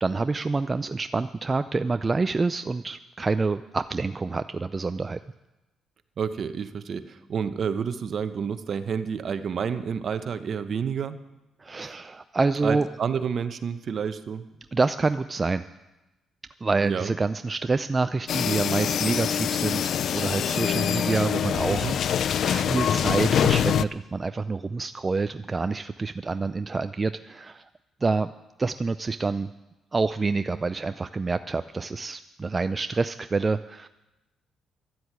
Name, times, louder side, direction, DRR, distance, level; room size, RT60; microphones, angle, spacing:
voice 1, 0.0-5.2 11.6-12.9 14.7-15.6 16.6-27.6 28.0-28.3 28.6-29.5 29.9-33.9, right 3 dB, 25° right, 11 dB, 0.4 m, -27 dB
voice 2, 6.2-11.2 12.6-14.5 16.8-17.1 21.7-22.0, right 6 dB, 55° right, 11 dB, 1.0 m, -29 dB
sound 1, 18.3-23.8, left 9 dB, 65° left, 0.4 m, -24 dB
12.0 x 7.8 x 9.6 m, 1.0 s
cardioid pair, 90°, 0 cm